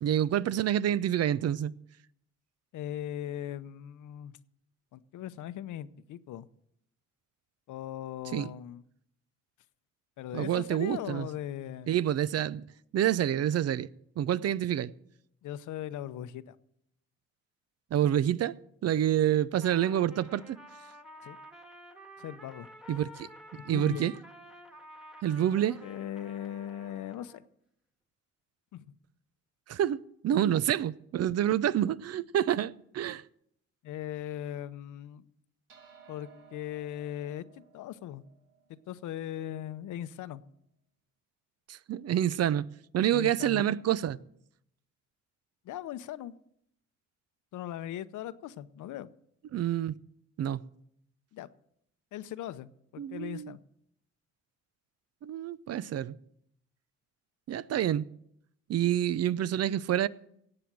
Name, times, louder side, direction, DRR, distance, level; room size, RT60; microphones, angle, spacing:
voice 1, 0.0-1.7 8.3-8.5 10.3-11.3 11.9-12.6 12.9-13.9 14.2-14.9 17.9-18.5 18.8-20.6 22.9-23.3 23.7-24.1 25.2-25.8 29.7-30.0 30.2-33.2 41.7-42.7 42.9-44.2 49.5-49.9 50.4-50.6 53.0-53.5 55.2-56.2 57.5-58.1 58.7-60.1, right 11 dB, 55° right, 0.5 m, -27 dB
voice 2, 2.7-4.4 4.9-6.5 7.7-8.8 10.2-12.0 15.4-16.6 19.3-19.4 21.2-21.4 22.2-22.7 23.5-24.1 25.8-27.4 28.7-28.9 33.8-35.2 36.1-38.2 38.7-40.4 43.1-43.7 45.6-46.3 47.5-49.1 51.3-51.5 52.1-53.6, left 11 dB, 80° left, 0.8 m, -39 dB
Trumpet, 19.6-27.4, equal, ahead, 1.7 m, -51 dB
sound 1, 35.7-40.4, right 7 dB, 90° right, 2.5 m, -59 dB
17.0 x 7.9 x 6.1 m
cardioid pair, 90°, 30 cm